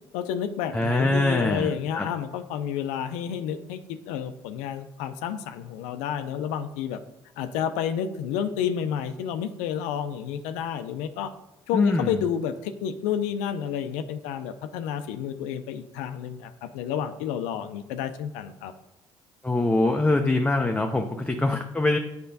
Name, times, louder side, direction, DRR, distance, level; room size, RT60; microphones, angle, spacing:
voice 1, 0.1-7.0 7.4-11.3 11.7-18.7, left 8 dB, 80° left, 9 dB, 0.4 m, -30 dB
voice 2, 0.7-2.1 11.7-12.2 19.4-22.0, left 2 dB, 10° left, 3 dB, 0.5 m, -24 dB
8.3 x 4.3 x 2.6 m, 0.94 s
hypercardioid pair, 65°, 12 cm